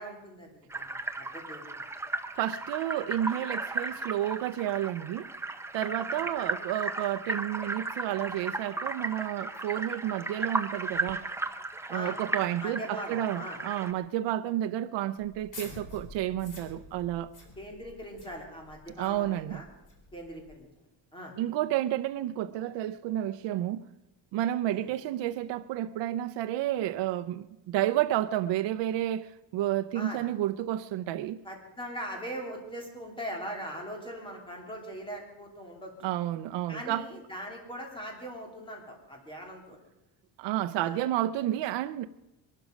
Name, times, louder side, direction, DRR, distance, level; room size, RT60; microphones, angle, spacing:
voice 1, 0.0-1.7 6.0-6.2 11.9-12.2 12.6-13.6 17.6-19.7 20.1-20.7 21.1-21.3 24.7-24.9 29.9-30.2 31.4-35.9 36.7-39.8 40.8-41.0, equal, 10° left, 3.0 m, -41 dB
sound 1, 0.7-13.9, right 2 dB, 5° right, 0.5 m, -35 dB
voice 2, 2.4-5.3 5.7-11.3 11.9-17.3 19.0-19.6 21.4-23.8 24.3-31.4 36.0-37.0 40.4-42.1, right 13 dB, 70° right, 0.6 m, -31 dB
sound 2, 15.2-20.6, left 2 dB, 40° left, 3.1 m, -49 dB
22.0 x 12.0 x 5.2 m
cardioid pair, 170°, 45 cm